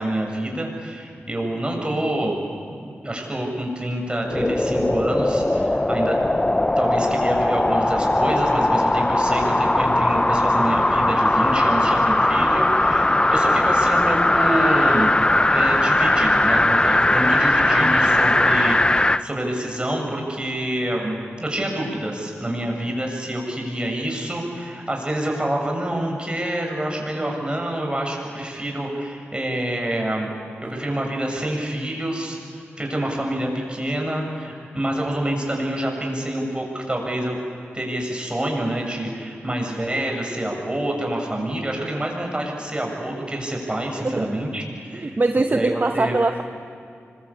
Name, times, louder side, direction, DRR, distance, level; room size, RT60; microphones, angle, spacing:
voice 1, 0.0-2.4 2.7-6.2 6.8-15.1 15.5-30.3 30.6-37.4 37.7-45.2 45.5-46.2, right 1 dB, 20° right, 0 dB, 7.4 m, -27 dB
sound 1, 4.3-19.2 19.7-19.8, left 1 dB, 20° left, 0.6 m, -19 dB
voice 2, 44.9-46.4, right 2 dB, 40° right, 6 dB, 1.1 m, -22 dB
25.5 x 23.0 x 8.7 m, 2.4 s
cardioid pair, 50°, 5 cm